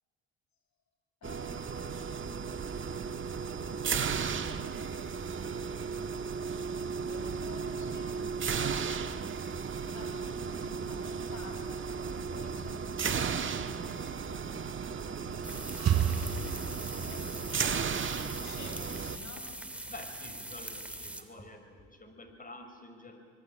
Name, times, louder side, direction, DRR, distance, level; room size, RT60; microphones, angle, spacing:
voice 1, 1.2-2.5 7.1-8.2 9.8-16.1 16.9-19.6, left 4 dB, 55° left, 3 dB, 7.7 m, -51 dB
sound 1, 1.2-19.2, right 6 dB, 35° right, 1.7 m, -35 dB
sound 2, 15.1-17.3, right 9 dB, 50° right, 4.5 m, -32 dB
sound 3, 15.4-21.2, right 1 dB, 5° right, 2.8 m, -43 dB
voice 2, 19.9-23.3, left 2 dB, 25° left, 6 dB, 5.8 m, -49 dB
25.5 x 22.0 x 8.9 m, 2.2 s
supercardioid pair, 85°, 34 cm